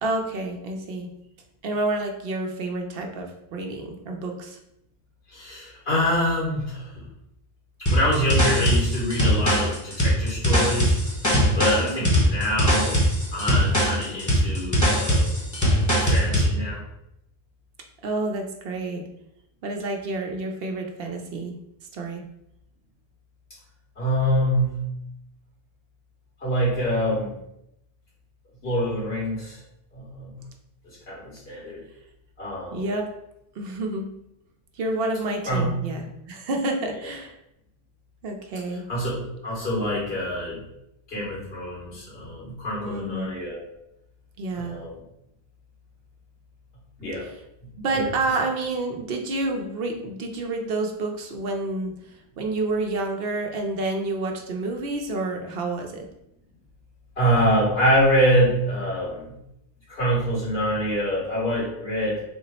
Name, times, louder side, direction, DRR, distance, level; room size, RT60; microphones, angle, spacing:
voice 1, 0.0-1.1 1.6-4.6 11.7-12.2 18.0-19.1 19.6-21.5 21.9-22.2 32.7-33.1 33.5-34.1 34.7-37.4 38.2-38.8 42.8-43.3 44.4-44.8 47.2-47.4 47.8-56.1, right 2 dB, 70° right, 2 dB, 0.8 m, -29 dB
voice 2, 5.3-7.0 7.9-11.0 11.6-13.0 13.3-15.3 16.0-16.8 24.0-24.8 26.4-27.3 28.6-29.6 29.9-30.3 31.1-31.8 32.4-32.8 35.5-35.7 38.9-40.6 41.1-43.6 44.5-44.9 47.0-47.2 47.9-48.1 57.2-59.3 59.9-62.2, equal, 70° left, -6 dB, 2.0 m, -25 dB
sound 1, 7.9-16.5, equal, 20° left, 0.8 m, -21 dB
3.6 x 2.0 x 4.0 m, 0.81 s
omnidirectional pair, 1.0 m